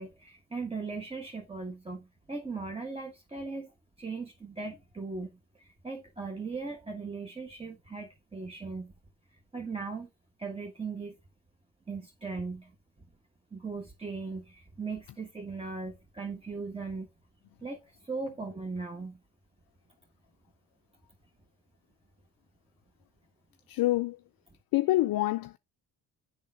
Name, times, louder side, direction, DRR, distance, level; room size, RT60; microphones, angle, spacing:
voice 1, 0.0-3.7 4.0-8.9 9.5-10.1 10.4-11.2 11.9-12.7 13.5-17.1 17.6-19.2, right 4 dB, 10° right, 1.3 m, -38 dB
voice 2, 23.7-24.2 24.7-25.6, left 16 dB, 50° left, 0.5 m, -26 dB
10.5 x 3.7 x 3.7 m
hypercardioid pair, 55°, 45 cm